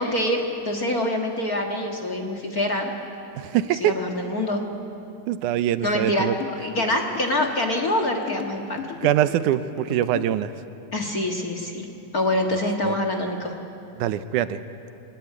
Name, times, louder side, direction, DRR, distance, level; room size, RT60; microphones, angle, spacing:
voice 1, 0.0-2.9 3.8-4.6 5.8-6.3 6.6-8.8 10.9-11.9 12.1-13.5, left 1 dB, 35° left, 2 dB, 1.7 m, -25 dB
voice 2, 3.4-3.9 5.3-6.4 9.0-10.5 12.8-13.0 14.0-14.6, right 12 dB, 85° right, 12 dB, 2.2 m, -23 dB
sound 1, 6.4-10.4, left 11 dB, 65° left, 1.6 m, -36 dB
24.0 x 19.0 x 9.4 m, 2.7 s
omnidirectional pair, 3.5 m